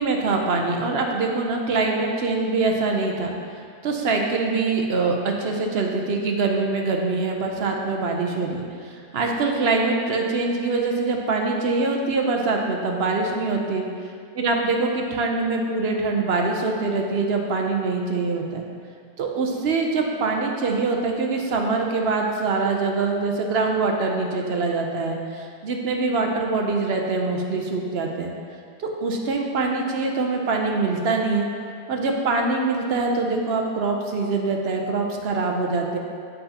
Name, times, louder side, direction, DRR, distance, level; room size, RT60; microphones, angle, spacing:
voice 1, 0.0-3.3 3.8-13.8 14.4-18.6 19.2-28.3 28.8-31.5 31.9-36.0, right 3 dB, 55° right, 1 dB, 0.8 m, -24 dB
7.7 x 6.7 x 2.9 m, 2.4 s
omnidirectional pair, 1.5 m